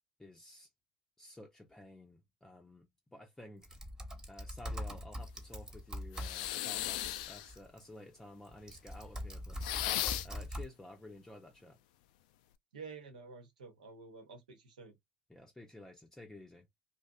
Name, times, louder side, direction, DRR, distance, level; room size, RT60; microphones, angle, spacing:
voice 1, 0.2-0.7 1.2-3.7 4.3-9.7 10.2-11.8 15.3-16.7, left 1 dB, 10° left, 0.6 m, -53 dB
Typing, 3.6-7.8 8.5-10.7, equal, 15° right, 1.1 m, -43 dB
sound 1, 6.1-7.5 9.6-10.4, left 13 dB, 70° left, 0.3 m, -36 dB
voice 2, 12.7-14.9, right 4 dB, 80° right, 0.8 m, -50 dB
2.6 x 2.4 x 2.2 m
hypercardioid pair, 65°, 4 cm